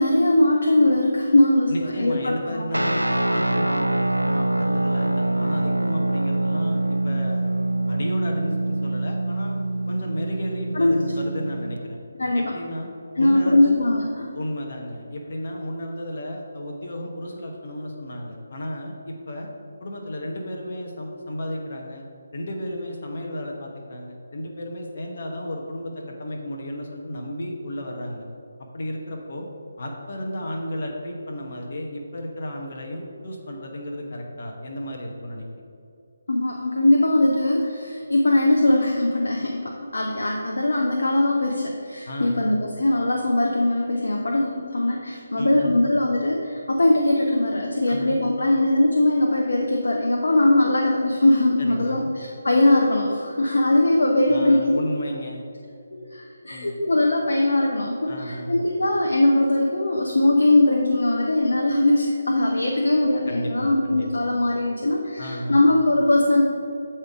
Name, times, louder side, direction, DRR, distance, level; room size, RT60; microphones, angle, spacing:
voice 1, 0.0-2.6 10.7-10.9 12.2-12.5 13.2-14.3 36.3-54.8 55.9-66.4, left 1 dB, 65° left, 0 dB, 0.8 m, -20 dB
voice 2, 1.7-7.5 7.9-9.6 9.9-12.0 12.3-12.9 13.2-13.7 14.3-19.5 19.8-22.0 22.3-28.3 28.7-29.5 29.8-35.6 42.0-42.6 45.4-45.8 47.9-48.1 51.6-52.1 54.3-55.4 56.5-56.8 58.1-58.7 63.3-64.3 65.2-65.6, left 1 dB, 50° left, 0 dB, 1.1 m, -33 dB
Guitar, 2.7-11.8, right 2 dB, 90° right, 0.4 m, -25 dB
8.2 x 4.4 x 4.7 m, 2.7 s
figure-of-eight pair, 150°, 0 cm